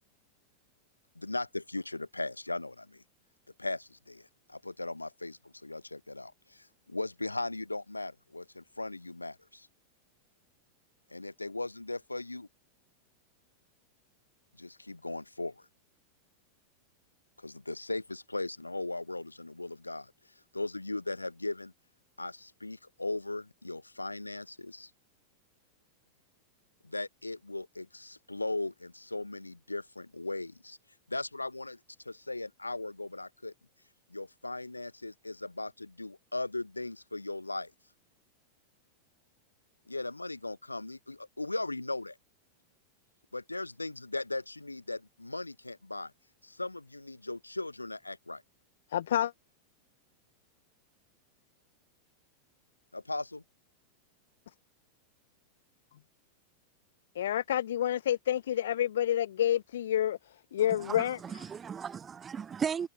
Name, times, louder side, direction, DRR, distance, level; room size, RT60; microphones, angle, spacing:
voice 1, 1.1-3.0 3.6-9.7 11.1-12.5 14.6-15.6 17.4-20.1 20.5-21.7 22.2-24.9 26.8-30.8 31.1-31.8 32.0-33.5 34.1-37.7 39.9-42.2 43.3-46.1 46.4-48.4 52.9-53.4, left 2 dB, 85° left, 1.3 m, -38 dB
voice 2, 48.9-49.3 57.2-60.2 60.5-61.2, left 11 dB, 60° left, 0.3 m, -28 dB
voice 3, 60.7-62.9, right 7 dB, 20° right, 0.6 m, -36 dB
figure-of-eight pair, 90°, 0 cm